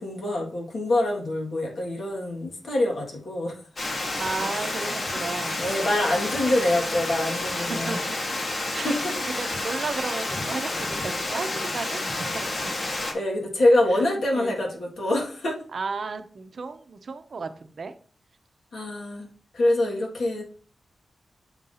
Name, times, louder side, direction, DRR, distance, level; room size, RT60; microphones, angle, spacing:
voice 1, 0.0-3.6 4.5-4.7 5.6-8.0 8.6-9.1 13.1-15.6 18.7-19.3 19.5-20.4, left 1 dB, 75° left, -1 dB, 1.8 m, -25 dB
Water, 3.8-13.1, left 2 dB, 45° left, 1.2 m, -30 dB
voice 2, 4.2-5.7 7.5-8.0 8.7-9.0 9.3-12.7 13.9-14.6 15.7-18.0, right 4 dB, 55° right, 9 dB, 0.6 m, -34 dB
7.2 x 2.7 x 5.5 m, 0.43 s
wide cardioid pair, 125°, 0 cm